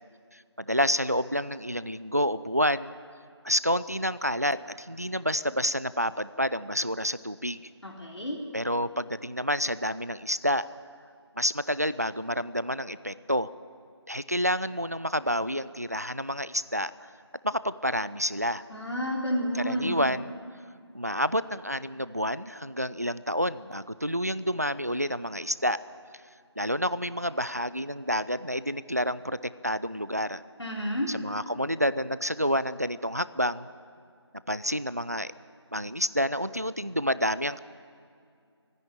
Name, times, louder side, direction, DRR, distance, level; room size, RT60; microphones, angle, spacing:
voice 1, 0.3-2.9 3.4-7.6 8.5-10.6 11.4-13.5 14.1-16.9 17.4-18.6 19.5-20.3 20.9-25.8 26.6-30.4 31.1-33.7 34.5-35.3 35.7-37.6, equal, 35° right, 16 dB, 0.4 m, -29 dB
voice 2, 7.8-8.4 18.7-20.0 30.6-31.1, equal, 70° left, -3 dB, 3.7 m, -30 dB
25.0 x 10.5 x 9.8 m, 2.3 s
figure-of-eight pair, 170°, 15 cm